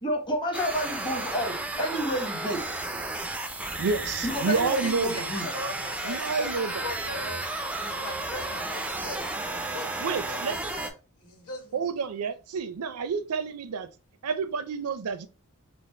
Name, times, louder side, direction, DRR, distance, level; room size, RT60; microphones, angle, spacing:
voice 1, 0.0-2.7 4.2-5.5, equal, 20° left, 1.1 m, -30 dB
sound 1, 0.5-10.9, right 2 dB, 5° right, 0.3 m, -33 dB
voice 2, 3.8-5.3 6.0-6.9 10.0-10.6 11.7-13.9 14.2-15.3, right 5 dB, 85° right, 0.5 m, -29 dB
voice 3, 4.5-7.5 7.8-11.9, left 2 dB, 85° left, 1.3 m, -41 dB
4.0 x 2.0 x 3.2 m
head